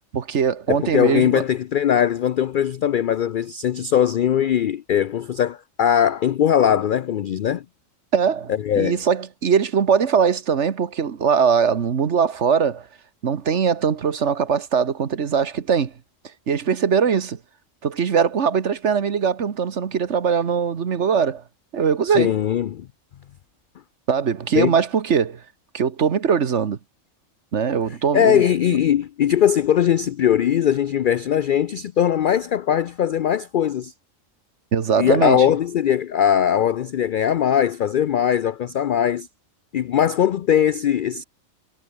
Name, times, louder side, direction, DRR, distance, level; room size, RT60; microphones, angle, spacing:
voice 1, 0.1-1.4 8.1-12.9 13.2-15.9 16.5-17.4 17.8-21.4 21.7-22.3 24.1-25.4 25.7-26.8 27.5-28.4 34.7-35.5, right 6 dB, 60° right, 1.5 m, -21 dB
voice 2, 0.7-7.6 8.6-9.0 22.1-22.9 24.5-24.7 28.1-33.9 35.0-39.3 39.7-41.2, left 9 dB, 70° left, 0.5 m, -20 dB
omnidirectional pair, 1.4 m